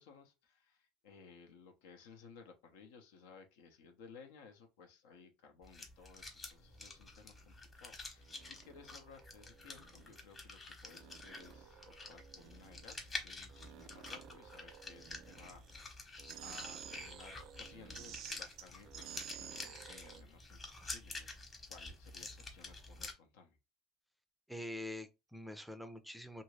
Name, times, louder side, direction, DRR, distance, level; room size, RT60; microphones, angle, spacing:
voice 1, 0.0-21.4 21.7-23.6, left 5 dB, 90° left, 0.8 m, -59 dB
sound 1, 5.6-23.1, left 3 dB, 25° left, 0.9 m, -49 dB
sound 2, 7.1-7.5 8.2-10.5 10.8-13.2 13.5-15.9 16.2-20.2, right 10 dB, 60° right, 0.4 m, -53 dB
voice 2, 24.5-26.4, left 1 dB, ahead, 0.4 m, -45 dB
2.7 x 2.6 x 3.1 m
supercardioid pair, 110°, 0 cm